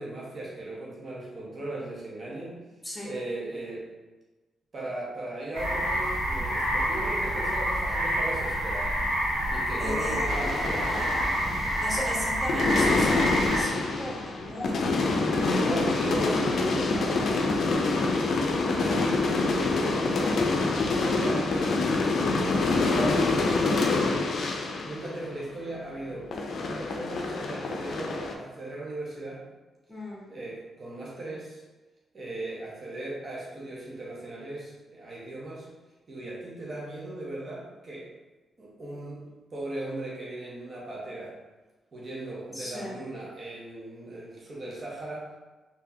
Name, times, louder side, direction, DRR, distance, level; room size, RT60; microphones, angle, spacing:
voice 1, 0.0-2.6 3.0-3.9 4.7-9.0 9.5-11.1 15.5-20.5 20.9-23.7 24.8-26.3 26.6-29.4 30.3-31.6 32.1-35.7 36.1-38.1 38.6-41.3 41.9-45.3, right 2 dB, 50° right, -5 dB, 0.9 m, -37 dB
voice 2, 2.8-3.1 9.8-10.2 11.8-14.8 29.9-30.2 42.5-43.0, left 1 dB, 10° left, -5 dB, 1.4 m, -36 dB
sound 1, 5.5-13.6, equal, 80° right, 1.4 m, -28 dB
sound 2, 10.3-12.1 12.5-26.0 26.3-28.3, left 3 dB, 65° left, 0.4 m, -26 dB
3.6 x 2.7 x 2.7 m, 1.2 s
supercardioid pair, 55°, 0 cm